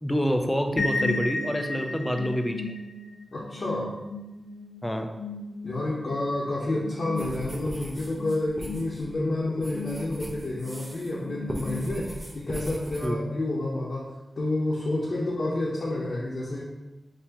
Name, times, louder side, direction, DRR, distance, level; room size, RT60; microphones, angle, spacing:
voice 1, 0.0-2.7 4.8-5.1 13.0-13.2, equal, 5° left, 5 dB, 0.4 m, -27 dB
sound 1, 0.8-12.4, left 2 dB, 75° left, 0.5 m, -36 dB
voice 2, 3.3-3.9 5.6-16.6, left 2 dB, 55° left, -7 dB, 0.9 m, -29 dB
sound 2, 7.2-11.2 11.5-13.1, right 1 dB, 20° right, 0.8 m, -39 dB
5.7 x 2.8 x 2.9 m, 1.0 s
wide cardioid pair, 105°, 0 cm